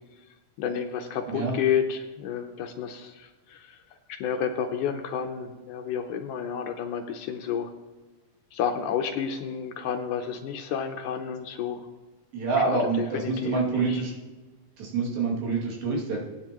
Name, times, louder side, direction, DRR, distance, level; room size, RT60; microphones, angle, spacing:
voice 1, 0.6-3.8 4.2-7.7 8.5-11.9 12.6-14.0, left 8 dB, 75° left, 5 dB, 2.0 m, -30 dB
voice 2, 1.3-1.6 12.3-14.1 14.8-16.2, right 3 dB, 85° right, -3 dB, 4.3 m, -27 dB
18.0 x 9.8 x 3.0 m, 1.3 s
omnidirectional pair, 4.1 m